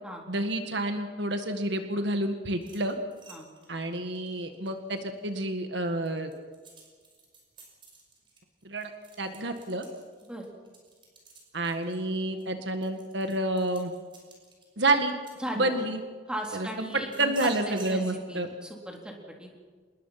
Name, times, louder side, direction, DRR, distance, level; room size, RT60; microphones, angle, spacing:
voice 1, 0.3-3.0 3.7-6.3 8.6-8.9 9.2-9.9 11.5-13.9 14.8-15.1 15.6-16.0 16.5-16.7 17.2-18.5, right 2 dB, 65° right, 6 dB, 1.8 m, -29 dB
sound 1, 2.6-5.4 5.8-16.0 16.5-18.0, right 3 dB, 25° right, 5.6 m, -52 dB
voice 2, 15.4-15.7 16.3-19.5, right 1 dB, 5° right, 0 dB, 3.7 m, -37 dB
27.0 x 21.0 x 5.9 m, 1.5 s
head